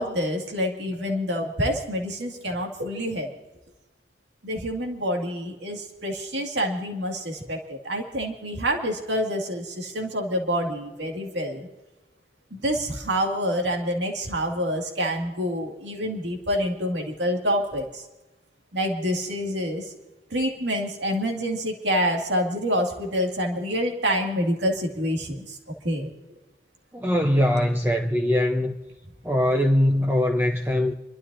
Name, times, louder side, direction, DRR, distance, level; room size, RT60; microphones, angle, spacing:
voice 1, 0.0-3.3 4.4-11.7 12.5-18.0 18.7-19.9 20.3-25.6 25.8-26.1, equal, 85° right, 2.3 m, -27 dB
voice 2, 26.9-28.7 29.2-30.9, left 1 dB, 10° right, 0.9 m, -22 dB
29.5 x 12.5 x 2.7 m
head